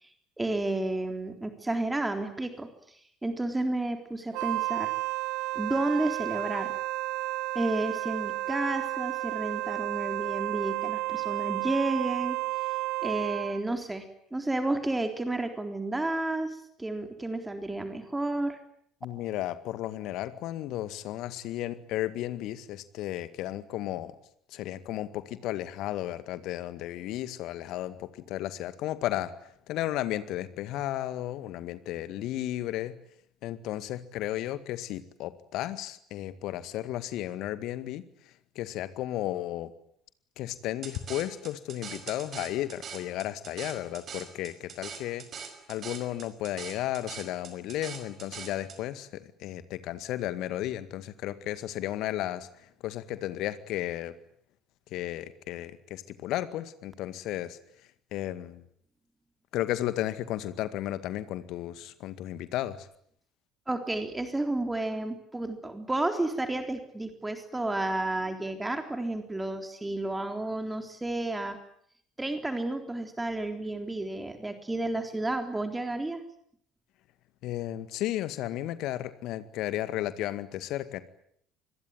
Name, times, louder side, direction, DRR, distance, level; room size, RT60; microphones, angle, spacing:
voice 1, 0.4-3.0 3.2-4.9 5.6-6.8 7.5-12.7 13.0-18.6 63.7-71.6 72.2-76.2, right 2 dB, 10° right, 6 dB, 3.7 m, -31 dB
Wind instrument woodwind instrument, 4.3-13.6, right 19 dB, 60° right, 1.8 m, -32 dB
voice 2, 19.0-24.1 24.5-33.0 33.4-39.7 40.4-45.2 45.7-54.1 54.9-57.6 58.1-58.6 59.5-62.9 77.4-81.0, left 14 dB, 55° left, 13 dB, 2.0 m, -34 dB
sound 1, 40.8-48.8, right 6 dB, 40° right, 5.3 m, -42 dB
26.5 x 22.0 x 9.3 m, 0.68 s
figure-of-eight pair, 60°, 0 cm